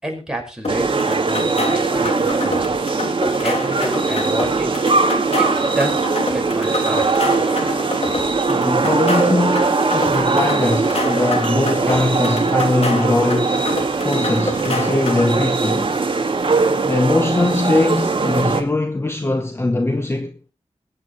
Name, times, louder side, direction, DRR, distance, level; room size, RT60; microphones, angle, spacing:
voice 1, 0.0-2.8 3.4-4.7 5.4-5.5 5.8-7.0 7.4-7.5, right 1 dB, 5° right, 5.5 m, -29 dB
sound 1, 0.6-15.5, left 2 dB, 65° left, 3.0 m, -28 dB
sound 2, 0.7-18.6, right 4 dB, 50° right, 2.0 m, -20 dB
voice 2, 8.5-16.0 16.8-20.4, left 2 dB, 20° left, 0.9 m, -21 dB
21.5 x 9.1 x 3.2 m
wide cardioid pair, 95°, 12 cm